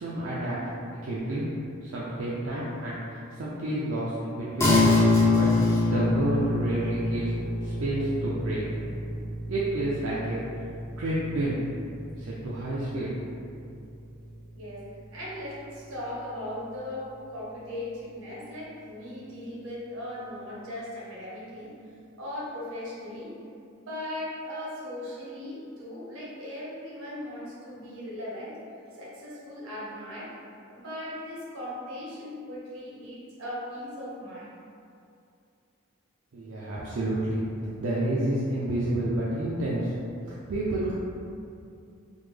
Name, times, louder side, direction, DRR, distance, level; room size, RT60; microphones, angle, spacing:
voice 1, 0.0-1.5 1.8-4.7 5.3-5.5 5.8-7.3 7.6-8.6 9.5-10.4 11.0-11.6 12.2-13.3 36.3-37.4 37.8-40.0 40.5-40.9, right 1 dB, 70° right, -7 dB, 0.4 m, -29 dB
sound 1, 4.6-14.3, left 2 dB, 15° left, 0.5 m, -27 dB
voice 2, 14.5-21.7 22.2-23.3 23.8-28.6 29.0-30.3 30.7-34.5, left 1 dB, 85° right, -6 dB, 0.9 m, -38 dB
3.4 x 2.0 x 3.2 m, 2.5 s
head